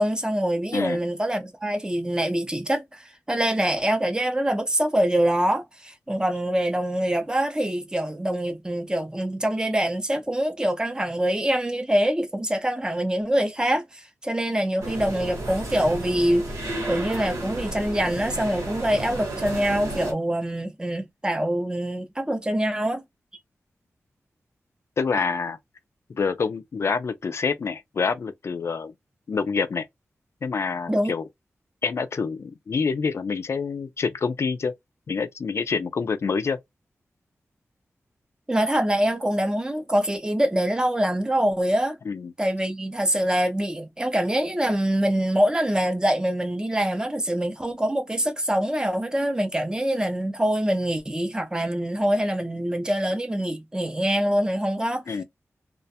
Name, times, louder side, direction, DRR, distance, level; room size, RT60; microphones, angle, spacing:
voice 1, 0.0-16.5 16.9-23.0 30.9-31.1 38.5-42.0 42.4-55.0, right 1 dB, 15° right, 0.5 m, -24 dB
sound 1, 14.8-20.1, right 1 dB, 85° right, 1.1 m, -32 dB
voice 2, 25.0-25.6 26.1-28.9 29.3-29.9 30.4-31.2 31.8-34.7 35.1-36.6 42.1-42.3 55.1-55.2, left 5 dB, 60° left, 0.3 m, -27 dB
2.4 x 2.1 x 2.7 m
wide cardioid pair, 85°, 5 cm